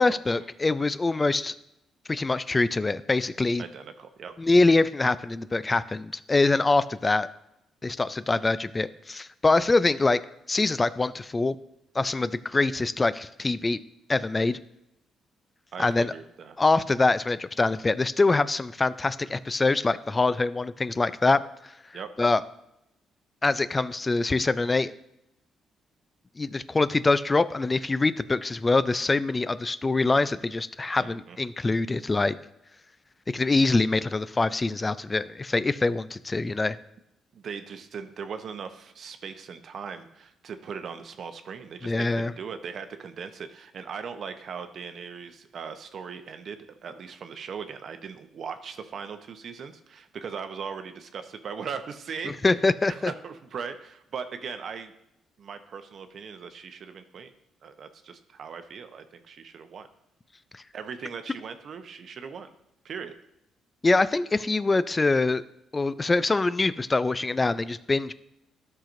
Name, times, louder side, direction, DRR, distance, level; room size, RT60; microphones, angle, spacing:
voice 1, 0.0-1.5 2.1-3.6 4.4-7.3 7.8-10.2 10.5-11.6 11.9-13.8 14.1-14.6 15.8-16.1 16.6-21.4 22.2-22.4 23.4-24.9 26.4-32.4 33.3-36.8 41.8-42.3 52.4-53.1 63.8-65.4 65.7-68.1, left 3 dB, 25° left, 15 dB, 0.4 m, -24 dB
voice 2, 3.6-4.3 15.7-16.6 21.9-22.1 31.0-31.4 37.3-52.4 52.9-54.9 55.4-57.3 57.6-59.9 60.7-62.5 62.8-63.1, right 6 dB, 60° right, 8 dB, 0.8 m, -39 dB
13.0 x 5.8 x 2.6 m, 0.83 s
cardioid pair, 90°, 0 cm